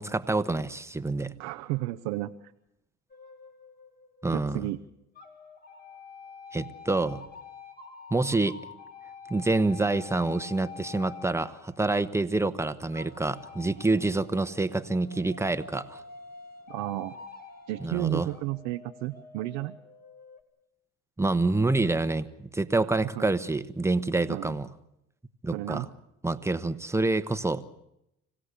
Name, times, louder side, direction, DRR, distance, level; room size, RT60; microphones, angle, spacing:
voice 1, 0.0-1.3 4.2-4.7 6.5-7.2 8.1-8.6 9.3-16.0 17.8-18.3 21.2-24.7 25.4-25.8 26.2-27.6, right 2 dB, 10° right, 11 dB, 1.2 m, -27 dB
voice 2, 1.4-2.5 4.3-4.8 16.7-17.2 17.7-19.8 23.2-23.3 24.3-24.6 25.5-25.9, right 17 dB, 85° right, 6 dB, 0.8 m, -33 dB
sound 1, 3.1-4.7 5.2-12.3 12.9-20.4, left 5 dB, 30° left, 3.4 m, -47 dB
26.0 x 16.5 x 8.4 m, 0.83 s
supercardioid pair, 80°, 30 cm